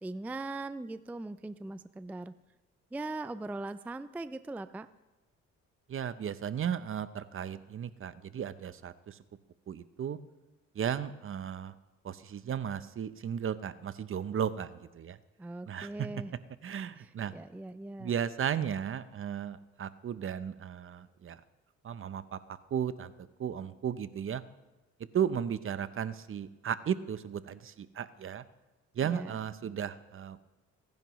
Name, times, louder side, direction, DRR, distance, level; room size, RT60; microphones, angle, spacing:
voice 1, 0.0-2.3 2.9-4.9 15.4-16.3 17.0-18.1 29.0-29.4, right 2 dB, 5° right, 13 dB, 0.3 m, -40 dB
voice 2, 5.9-9.1 9.7-10.2 10.8-11.7 12.0-15.2 15.7-15.9 16.6-17.3 18.0-21.4 21.8-22.4 22.7-23.1 23.4-24.4 25.1-28.4 29.0-30.4, right 8 dB, 45° right, 14 dB, 0.7 m, -35 dB
25.0 x 10.5 x 3.1 m, 1.1 s
cardioid pair, 90°, 30 cm